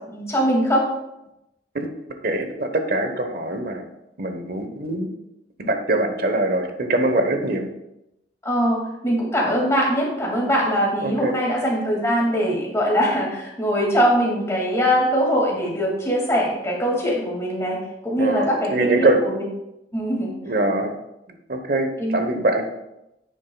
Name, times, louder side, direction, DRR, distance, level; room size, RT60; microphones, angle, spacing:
voice 1, 0.1-0.9 8.4-19.5 19.9-20.3 22.0-22.2, equal, 15° left, -3 dB, 2.3 m, -22 dB
voice 2, 2.2-3.8 4.2-5.1 5.6-7.6 11.0-11.4 18.2-19.2 20.4-20.9 21.5-22.7, right 2 dB, 60° right, 6 dB, 1.0 m, -23 dB
10.5 x 8.3 x 2.3 m, 0.88 s
head